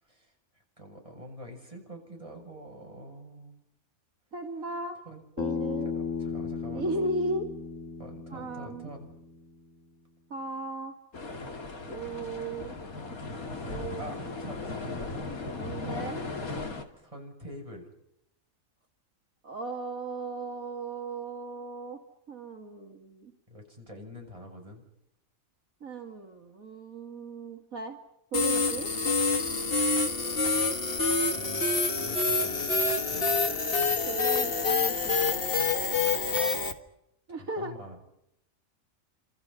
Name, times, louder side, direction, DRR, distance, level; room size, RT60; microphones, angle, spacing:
voice 1, 0.0-0.3 0.8-3.6 5.1-5.2 5.8-6.9 8.0-9.1 12.1-12.6 14.0-15.3 17.0-17.9 23.5-24.8 31.3-31.6 32.0-33.4 36.3-36.5 37.3-38.0, equal, 25° right, 1 dB, 7.6 m, -46 dB
voice 2, 4.3-5.0 5.4-5.9 6.7-7.5 8.3-8.9 10.3-10.9 11.8-12.7 13.7-14.1 15.3-16.2 19.4-22.0 22.3-23.3 25.8-28.0 28.3-28.9 34.1-35.4 37.3-37.7, right 2 dB, 75° right, 3 dB, 2.6 m, -36 dB
Bass guitar, 5.4-9.6, left 5 dB, 65° left, 2.3 m, -35 dB
sound 1, 11.1-16.8, left 3 dB, 90° left, 2.9 m, -37 dB
sound 2, 28.3-36.7, left 4 dB, 45° left, 1.9 m, -27 dB
30.0 x 27.0 x 5.7 m, 0.79 s
omnidirectional pair, 1.4 m